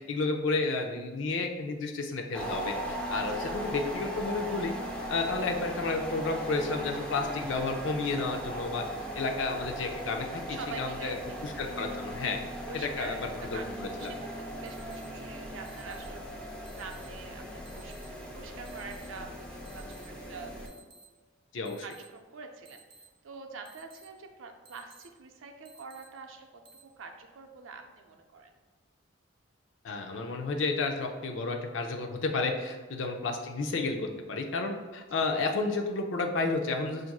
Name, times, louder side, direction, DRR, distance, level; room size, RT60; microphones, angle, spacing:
voice 1, 0.1-4.7 5.1-8.8 9.1-11.2 11.4-12.4 12.7-13.2 13.5-14.1 21.5-21.8 29.8-37.1, left 3 dB, 75° left, 3 dB, 0.5 m, -31 dB
sound 1, 2.3-20.7, equal, 5° left, 0.5 m, -38 dB
voice 2, 10.5-11.5 12.6-19.4 19.7-21.2 21.8-26.5 27.0-28.5 35.1-35.3, right 4 dB, 90° right, 4 dB, 0.5 m, -46 dB
sound 2, 14.0-14.1 14.7-15.0 15.7-16.0 16.7-17.0 17.7-18.0 18.7-19.0 19.7-20.0 20.7-21.0 21.7-22.0 22.7-23.0 23.7-24.0 24.7-25.0 25.7-26.0 26.7-26.8, right 3 dB, 50° right, 0.8 m, -55 dB
5.8 x 2.5 x 2.3 m, 1.4 s
head